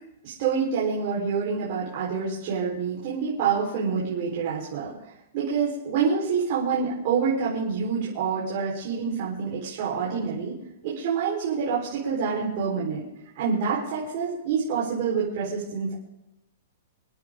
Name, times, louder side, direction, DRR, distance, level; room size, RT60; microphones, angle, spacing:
voice 1, 0.2-4.9 5.3-10.5 10.8-13.0 13.4-16.0, right 6 dB, 35° right, -7 dB, 4.3 m, -27 dB
27.0 x 10.5 x 3.8 m, 0.89 s
hypercardioid pair, 175°, 0 cm